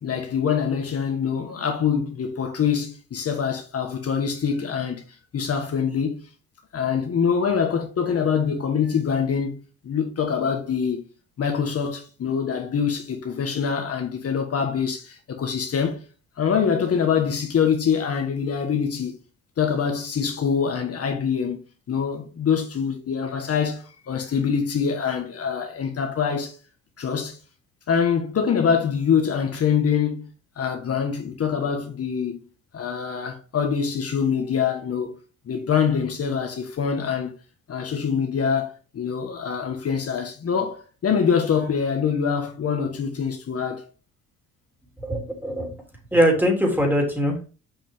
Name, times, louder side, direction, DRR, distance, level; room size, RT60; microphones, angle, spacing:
voice 1, 0.0-5.0 5.3-6.2 6.7-9.6 9.8-11.0 11.4-16.0 16.4-19.1 19.6-21.6 21.9-26.6 27.0-27.4 27.9-30.3 30.6-32.4 32.7-35.1 35.5-37.3 37.7-40.8 41.0-43.9, left 7 dB, 50° left, 1.5 m, -24 dB
voice 2, 45.0-45.7 46.1-47.5, equal, 5° right, 3.2 m, -21 dB
7.2 x 5.4 x 3.7 m
cardioid pair, 90°, 30 cm